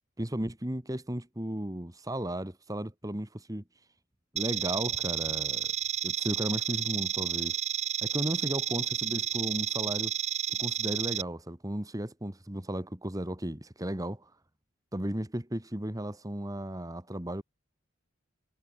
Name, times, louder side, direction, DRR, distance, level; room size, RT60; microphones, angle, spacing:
voice 1, 0.2-3.6 4.3-5.7 6.0-7.6 8.0-10.1 10.6-14.3 14.9-17.4, right 1 dB, 15° right, 1.8 m, -35 dB
sound 1, 4.4-11.2, right 10 dB, 35° right, 1.1 m, -31 dB
head